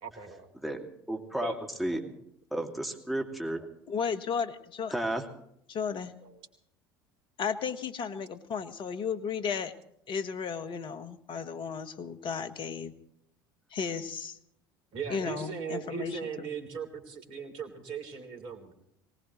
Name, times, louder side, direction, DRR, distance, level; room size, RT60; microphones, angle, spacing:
voice 1, 0.0-0.5 1.4-1.6 1.9-2.1 6.2-6.3 14.9-18.7, right 6 dB, 55° right, 7 dB, 3.3 m, -39 dB
voice 2, 0.6-1.5 1.8-2.0 2.5-3.7 4.9-5.2, right 1 dB, ahead, 1 dB, 2.4 m, -32 dB
voice 3, 3.9-4.9 5.7-6.1 7.4-9.7 10.1-12.9 13.7-14.4 15.1-16.5, left 6 dB, 45° left, 11 dB, 1.4 m, -34 dB
23.5 x 19.0 x 3.1 m, 0.72 s
hypercardioid pair, 70°, 12 cm